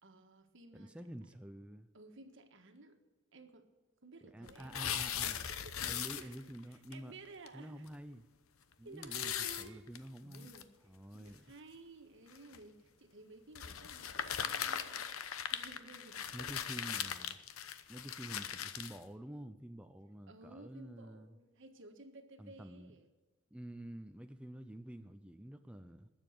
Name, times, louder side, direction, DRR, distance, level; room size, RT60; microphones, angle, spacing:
voice 1, 0.0-1.0 1.9-3.0 3.3-3.7 4.0-6.4 6.7-7.9 8.8-9.9 10.2-15.1 15.5-16.3 20.3-23.1, right 2 dB, 65° right, 6 dB, 1.6 m, -55 dB
voice 2, 0.7-1.9 4.2-5.4 5.8-7.2 7.5-8.2 8.8-10.5 10.9-11.4 16.3-17.4 17.9-21.4 22.4-22.9 23.5-26.1, right 1 dB, 5° right, 7 dB, 0.5 m, -49 dB
sound 1, 4.5-6.6 6.9-7.0 7.5-7.6 7.9-8.0 9.0-10.6 11.3-11.4 12.3-12.6 13.5-19.0, left 9 dB, 85° left, 0.9 m, -39 dB
20.0 x 7.3 x 6.7 m, 1.2 s
head